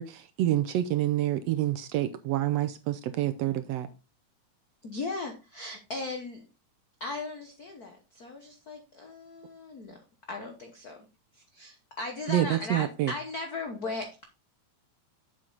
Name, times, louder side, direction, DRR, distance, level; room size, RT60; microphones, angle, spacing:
voice 1, 0.0-3.9 12.3-13.1, right 13 dB, 75° right, 1.6 m, -27 dB
voice 2, 4.8-6.4 7.0-10.0 10.3-11.1 11.3-14.2, left 3 dB, 90° left, 0.8 m, -37 dB
7.6 x 7.5 x 3.9 m
omnidirectional pair, 3.4 m